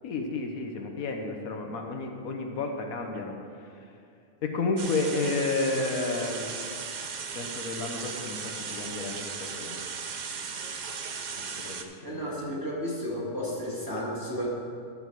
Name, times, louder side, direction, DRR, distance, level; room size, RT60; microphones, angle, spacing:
voice 1, 0.0-3.9 4.4-9.8 10.3-10.7 11.4-12.3, left 3 dB, 75° left, 3 dB, 1.3 m, -32 dB
sound 1, 4.8-11.8, right 6 dB, 60° right, 0.4 m, -37 dB
voice 2, 12.0-14.5, equal, 15° right, -5 dB, 1.8 m, -32 dB
11.5 x 6.9 x 4.6 m, 2.5 s
omnidirectional pair, 1.5 m